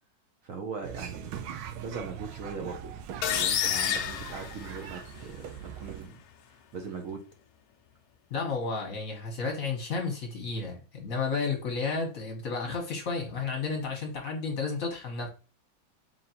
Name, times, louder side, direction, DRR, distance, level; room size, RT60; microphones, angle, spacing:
voice 1, 0.4-1.4 1.7-5.5 5.8-7.2, right 5 dB, 75° right, 0.7 m, -40 dB
sound 1, 0.8-6.1, right 8 dB, 90° right, 1.4 m, -41 dB
sound 2, 3.2-5.2, left 9 dB, 85° left, 0.8 m, -29 dB
voice 2, 8.3-15.3, left 4 dB, 55° left, 1.1 m, -32 dB
3.9 x 3.5 x 2.7 m
omnidirectional pair, 2.2 m